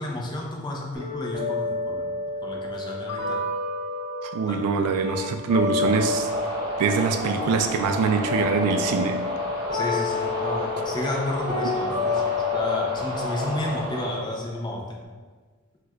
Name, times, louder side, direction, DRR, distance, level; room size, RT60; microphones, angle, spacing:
voice 1, 0.0-2.1 2.4-3.4 4.5-4.6 9.7-15.0, left 1 dB, 20° left, -1 dB, 0.4 m, -32 dB
sound 1, 0.9-6.9 7.2-15.0, left 4 dB, 5° right, 1.2 m, -30 dB
Mallet percussion, 3.1-5.9, right 6 dB, 85° left, 0.9 m, -40 dB
voice 2, 4.2-6.3 6.8-9.2, right 5 dB, 80° right, 10 dB, 0.3 m, -24 dB
sound 2, 5.8-14.1, equal, 20° right, 0.9 m, -31 dB
4.3 x 2.2 x 2.3 m, 1.4 s
head